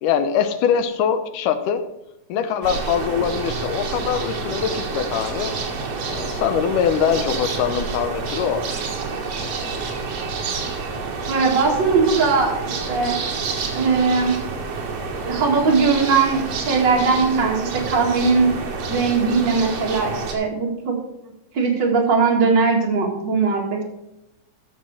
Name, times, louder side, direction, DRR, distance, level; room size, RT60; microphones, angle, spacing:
voice 1, 0.0-1.8 2.3-5.6 6.1-8.6, left 8 dB, 85° left, 9 dB, 2.4 m, -22 dB
sound 1, 2.6-20.3, right 4 dB, 55° right, 2.4 m, -28 dB
voice 2, 11.3-13.2 13.7-14.3 15.2-18.5 18.9-21.0 21.5-23.8, right 4 dB, 40° right, -1 dB, 2.4 m, -19 dB
14.0 x 6.0 x 4.8 m, 0.89 s
omnidirectional pair, 3.6 m